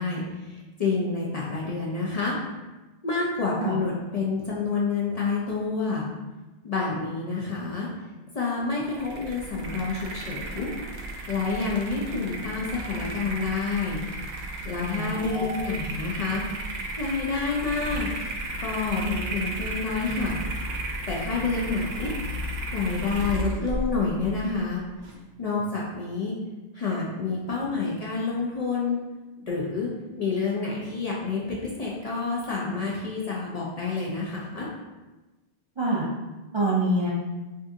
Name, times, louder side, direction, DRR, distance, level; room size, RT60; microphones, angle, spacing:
voice 1, 0.0-2.4 3.0-6.1 6.6-7.9 8.3-10.7 11.3-14.0 14.6-16.4 17.0-18.1 18.6-20.4 21.1-22.1 22.7-24.8 25.4-26.3 26.7-29.0 29.4-29.9 30.2-34.7, left 4 dB, 50° left, -4 dB, 0.5 m, -28 dB
sound 1, 8.8-25.2, right 1 dB, 75° right, 0.8 m, -34 dB
voice 2, 14.9-15.6 35.8-36.1 36.5-37.1, right 2 dB, 50° right, -6 dB, 0.3 m, -26 dB
2.6 x 2.5 x 3.6 m, 1.1 s
omnidirectional pair, 1.0 m